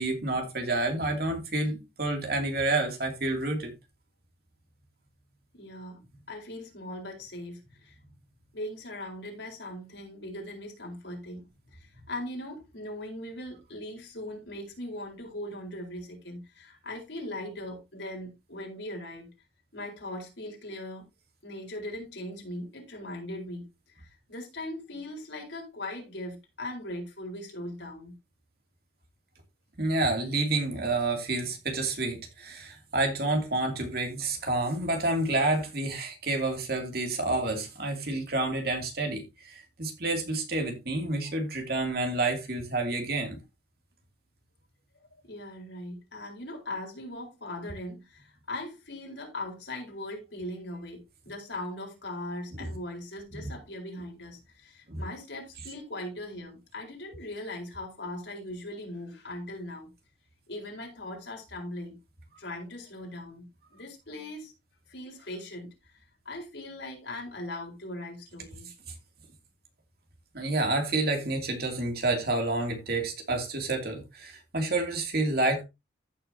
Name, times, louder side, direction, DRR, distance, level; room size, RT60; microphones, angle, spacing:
voice 1, 0.0-3.7 29.8-43.4 54.9-55.0 70.3-75.6, right 2 dB, 55° right, 2.6 m, -29 dB
voice 2, 5.5-8.0 8.5-19.3 19.7-21.1 21.4-23.6 23.9-28.1 45.3-59.9 60.5-62.0 62.4-64.5 64.9-66.0 66.2-68.7, left 1 dB, 70° left, 4.3 m, -40 dB
15.0 x 6.6 x 2.8 m
head